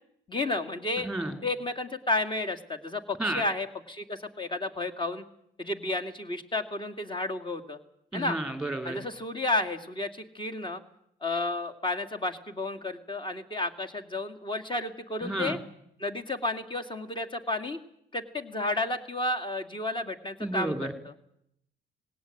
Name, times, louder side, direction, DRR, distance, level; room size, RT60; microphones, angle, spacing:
voice 1, 0.3-1.1 1.4-5.2 5.6-7.8 8.1-8.4 8.8-10.8 11.2-15.6 16.0-17.8 18.1-21.2, left 2 dB, 25° left, 5 dB, 2.5 m, -32 dB
voice 2, 1.0-1.4 3.2-3.4 8.1-9.0 15.2-15.6 20.4-20.9, right 1 dB, ahead, 8 dB, 3.7 m, -31 dB
20.0 x 17.5 x 9.3 m, 0.72 s
cardioid pair, 90°, 20 cm